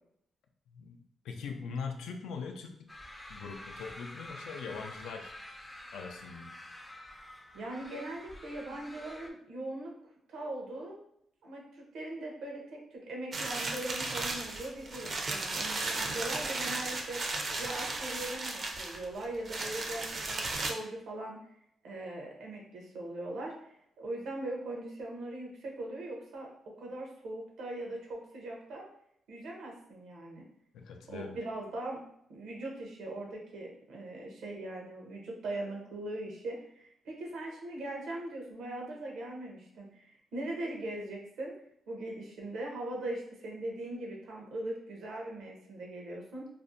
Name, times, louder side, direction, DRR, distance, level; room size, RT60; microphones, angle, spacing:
voice 1, 0.7-2.9 3.3-5.3 5.9-6.6 30.7-31.4, left 5 dB, 90° left, 4 dB, 0.3 m, -41 dB
sound 1, 2.9-9.3, left 1 dB, 15° left, 0.3 m, -48 dB
voice 2, 7.5-9.9 10.3-11.0 11.4-17.2 17.6-21.4 21.8-28.8 29.3-30.4 31.1-32.0 32.3-41.5 41.9-46.5, right 1 dB, 85° right, -1 dB, 0.7 m, -40 dB
sound 2, 13.3-20.7, right 3 dB, 50° right, 0.4 m, -35 dB
2.5 x 2.1 x 2.6 m, 0.73 s
cardioid pair, 95°, 0 cm